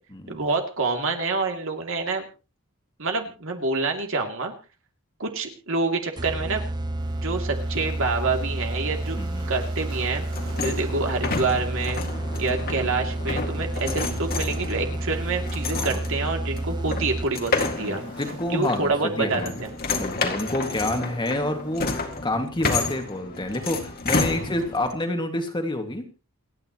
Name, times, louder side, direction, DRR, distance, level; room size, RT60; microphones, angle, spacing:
voice 1, 0.3-2.3 3.0-4.5 5.2-6.6 7.2-9.2 9.5-10.2 10.6-12.0 12.4-18.0 18.5-19.7, right 3 dB, 65° right, 3 dB, 2.7 m, -27 dB
sound 1, 6.2-17.6, right 1 dB, 20° right, 0.7 m, -30 dB
Waves surf, 7.0-21.9, right 3 dB, 90° right, 6.0 m, -49 dB
voice 2, 9.1-9.5 15.7-16.0 17.8-19.6 20.0-26.1, left 1 dB, 20° left, 5 dB, 2.0 m, -28 dB
sound 2, 10.3-24.9, left 3 dB, 45° left, 2.1 m, -30 dB
28.5 x 9.8 x 3.0 m, 0.32 s
head